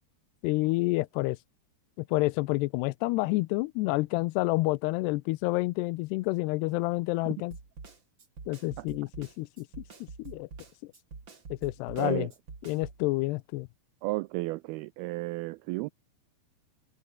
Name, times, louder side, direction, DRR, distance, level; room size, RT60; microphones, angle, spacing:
voice 1, 0.4-1.4 2.0-7.6 8.5-9.7 10.2-10.5 11.5-12.3 12.7-13.7, left 21 dB, 85° left, 2.7 m, -29 dB
Snare drum, 7.5-13.0, right 4 dB, 30° right, 3.7 m, -46 dB
voice 2, 12.0-12.3 14.0-15.9, right 22 dB, 80° right, 2.3 m, -33 dB
open air
omnidirectional pair, 4.8 m